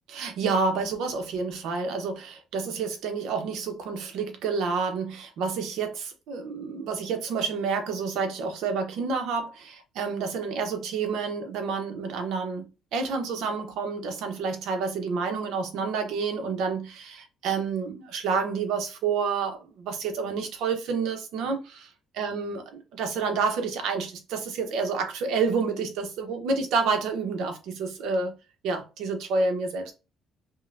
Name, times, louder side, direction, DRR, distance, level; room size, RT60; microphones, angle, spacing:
voice 1, 0.1-12.6 12.9-21.9 22.2-22.6 22.9-28.3 28.6-29.9, right 4 dB, 80° right, 0.8 m, -29 dB
5.3 x 2.2 x 2.5 m
cardioid pair, 150°, 0 cm